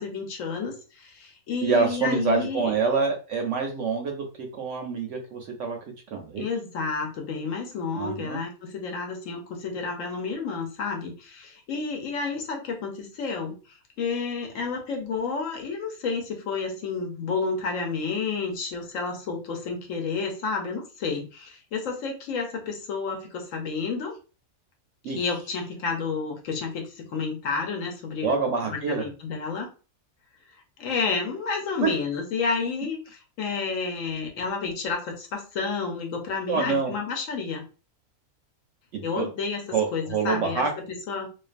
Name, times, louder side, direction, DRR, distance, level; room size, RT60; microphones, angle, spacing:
voice 1, 0.0-2.7 6.4-13.6 14.0-24.2 25.0-28.4 28.7-29.7 30.8-33.0 33.4-37.7 39.0-40.7 41.1-41.3, left 4 dB, 70° left, 2 dB, 0.9 m, -30 dB
voice 2, 1.6-5.8 6.1-6.4 7.9-8.4 25.0-25.2 28.2-29.0 31.8-31.9 36.5-36.9 38.9-39.3 39.7-40.7, right 5 dB, 65° right, 3 dB, 0.8 m, -26 dB
2.4 x 2.3 x 2.4 m, 0.34 s
omnidirectional pair, 1.5 m